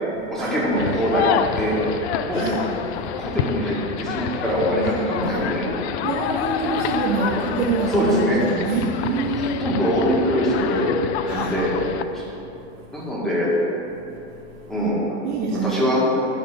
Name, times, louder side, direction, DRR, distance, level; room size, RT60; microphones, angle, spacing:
voice 1, 0.3-1.8 2.2-2.4 3.2-5.6 7.9-8.4 9.3-10.8 11.3-11.7 12.1-12.3 12.9-13.5 14.7-15.1 15.6-16.0, equal, ahead, -7 dB, 1.8 m, -23 dB
sound 1, 0.7-12.0, left 8 dB, 65° left, 0.5 m, -28 dB
voice 2, 0.9-1.2 2.3-2.6 3.2-3.3 5.2-8.3 8.6-9.8 11.3-11.5 12.2-12.3 12.5-13.0 14.1-14.7 15.2-15.9, right 4 dB, 70° right, -8 dB, 2.1 m, -27 dB
11.0 x 3.9 x 6.6 m, 3.0 s
supercardioid pair, 155°, 36 cm